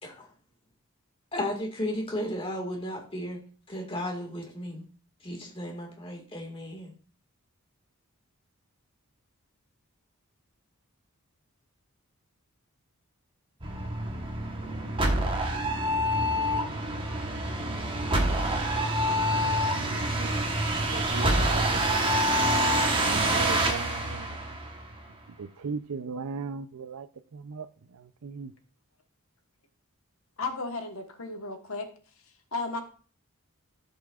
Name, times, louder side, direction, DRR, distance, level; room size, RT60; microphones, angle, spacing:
voice 1, 1.3-3.4 3.7-4.8 5.2-6.9, left 1 dB, 25° left, 1.9 m, -34 dB
sound 1, 13.6-25.1, right 1 dB, 25° right, 1.1 m, -27 dB
voice 2, 19.2-21.8 23.0-24.4 25.4-27.1 27.3-27.7 27.9-28.5, right 5 dB, 80° right, 0.5 m, -38 dB
voice 3, 30.4-31.9 32.5-32.8, left 3 dB, 70° left, 1.3 m, -34 dB
14.0 x 5.6 x 2.4 m
head